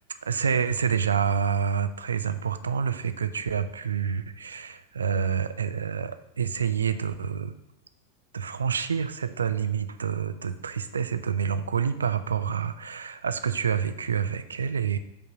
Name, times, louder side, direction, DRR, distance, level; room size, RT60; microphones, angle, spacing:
voice 1, 0.2-7.5 8.3-15.0, right 7 dB, 70° right, 11 dB, 0.4 m, -28 dB
5.4 x 3.9 x 5.8 m, 0.83 s
figure-of-eight pair, 90°, 0 cm